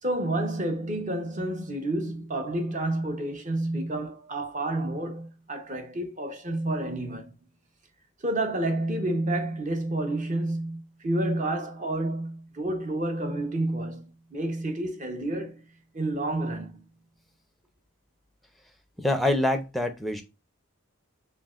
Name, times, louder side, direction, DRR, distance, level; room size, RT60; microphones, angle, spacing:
voice 1, 0.0-7.3 8.2-15.6 15.9-16.8, right 1 dB, 35° right, 0.9 m, -30 dB
voice 2, 19.0-20.2, left 1 dB, ahead, 0.6 m, -25 dB
4.4 x 3.7 x 2.4 m
head